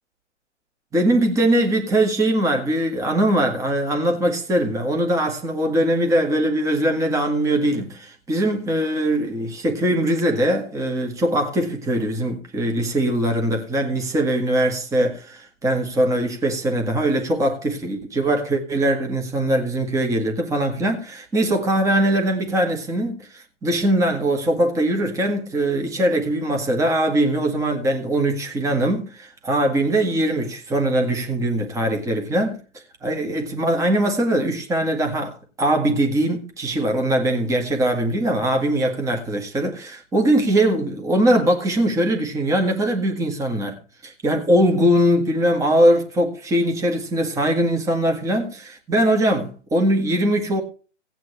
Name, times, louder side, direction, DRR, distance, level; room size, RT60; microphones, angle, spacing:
voice 1, 0.9-32.6 33.0-50.6, right 1 dB, 10° right, 1.9 m, -21 dB
17.0 x 9.3 x 3.3 m
hypercardioid pair, 135°, 38 cm